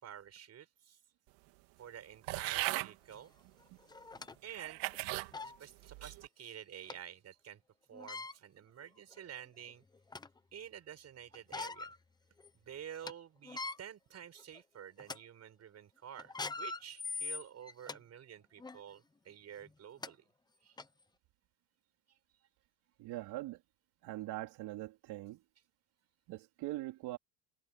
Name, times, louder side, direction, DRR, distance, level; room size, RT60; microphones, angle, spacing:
voice 1, 0.0-1.0 1.8-3.3 4.4-4.8 5.4-7.6 7.9-9.8 10.5-11.9 12.7-20.2 20.6-20.8 22.1-22.2, right 9 dB, 40° right, 5.5 m, -50 dB
sound 1, 2.3-2.9 3.7-3.8 4.5-5.3 5.9-6.3, right 20 dB, 90° right, 2.2 m, -37 dB
sound 2, 3.1-3.2 3.9-4.3 4.9-5.0 5.3-5.6 6.9-7.0 7.9-8.3 9.1-9.2 9.7-10.4 11.3-12.0 12.4-12.5 12.8-13.1 13.4-13.8 14.4-14.6 15.0-15.2 16.2-18.0 18.6-18.8 19.6-19.7 20.0-20.1 20.8-20.9, left 3 dB, 10° left, 0.7 m, -42 dB
voice 2, 23.0-23.6 24.0-25.4 26.3-27.2, right 17 dB, 65° right, 4.2 m, -42 dB
cardioid pair, 140°, 41 cm